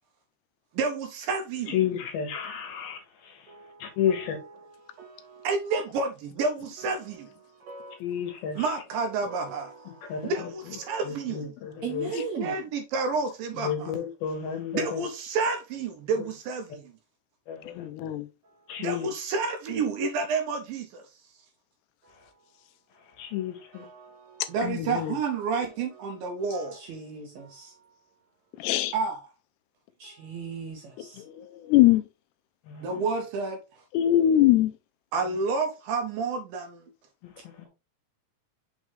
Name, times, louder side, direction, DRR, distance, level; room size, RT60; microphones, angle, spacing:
voice 1, 0.7-1.8 5.4-7.3 8.6-9.7 10.2-11.5 12.1-13.9 14.7-16.8 18.8-21.1 24.5-26.7 28.9-29.2 32.8-33.6 35.1-36.8, right 4 dB, 75° right, 2.3 m, -29 dB
voice 2, 1.7-3.5 3.8-4.4 8.0-8.7 10.1-12.1 13.5-15.0 16.2-16.3 17.5-17.9 18.7-19.1 23.2-23.9 32.6-33.1 37.2-37.7, left 9 dB, 75° left, 3.0 m, -32 dB
voice 3, 3.5-5.5 7.0-8.0 9.2-10.3 10.8-11.0 11.8-12.6 18.4-18.8 22.0-22.6 22.9-23.2 23.7-24.6 25.6-26.2 26.5-27.9 30.0-31.2 32.7-33.0 37.4-37.7, right 6 dB, 55° right, 2.1 m, -42 dB
voice 4, 17.7-18.3 24.6-25.2 28.6-28.9 31.2-32.1 33.9-34.7, left 13 dB, 90° left, 2.8 m, -22 dB
6.2 x 4.8 x 3.3 m
omnidirectional pair, 4.6 m